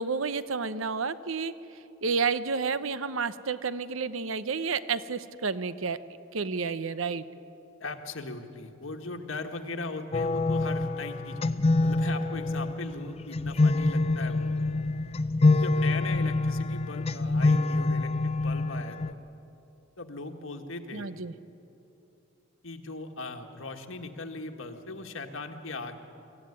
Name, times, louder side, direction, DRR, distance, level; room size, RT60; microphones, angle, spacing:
voice 1, 0.0-1.5 2.0-6.0 6.3-7.3 20.9-21.3, right 5 dB, 90° right, 14 dB, 0.8 m, -30 dB
voice 2, 7.8-11.4 11.8-14.5 15.5-19.2 20.0-21.1 22.6-25.9, left 3 dB, 80° left, 4 dB, 1.7 m, -38 dB
sound 1, 10.1-19.1, left 2 dB, 30° left, 0.5 m, -26 dB
24.0 x 15.0 x 9.8 m, 2.9 s
head